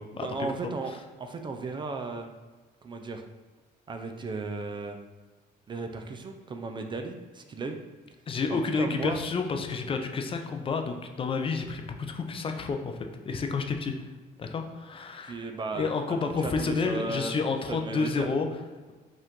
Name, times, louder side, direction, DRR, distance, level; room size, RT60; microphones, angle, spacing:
voice 1, 0.1-2.3 2.8-3.2 3.9-5.0 5.7-7.8 8.5-9.2 15.2-15.9 16.2-17.3 17.7-18.3, right 3 dB, 30° right, 5 dB, 0.4 m, -35 dB
voice 2, 8.3-14.0 14.4-15.4 15.7-18.5, left 4 dB, 30° left, 5 dB, 0.5 m, -30 dB
5.2 x 2.5 x 3.6 m, 1.3 s
cardioid pair, 110°, 17 cm